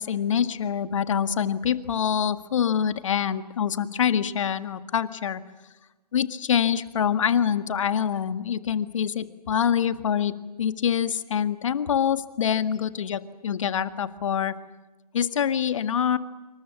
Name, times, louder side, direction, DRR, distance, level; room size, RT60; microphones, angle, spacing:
voice 1, 0.0-5.4 6.1-10.3 10.6-14.6 15.1-16.2, left 8 dB, 50° left, 11 dB, 1.8 m, -25 dB
27.5 x 25.5 x 7.4 m, 1.2 s
figure-of-eight pair, 140°, 21 cm